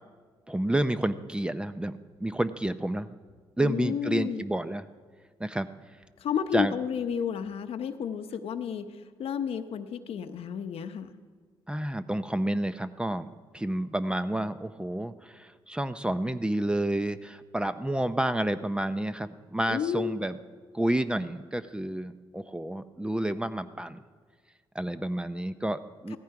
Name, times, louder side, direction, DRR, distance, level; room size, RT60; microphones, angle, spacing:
voice 1, 0.5-3.1 3.6-4.8 5.4-5.7 6.5-6.7 11.7-13.3 13.5-20.4 20.7-24.0 24.7-26.2, right 1 dB, 10° right, 12 dB, 0.6 m, -30 dB
voice 2, 3.6-4.4 6.2-8.9 9.2-11.1 19.7-20.2 26.1-26.2, left 8 dB, 75° left, 9 dB, 0.8 m, -31 dB
16.0 x 14.5 x 4.8 m, 1.5 s
cardioid pair, 85°, 10 cm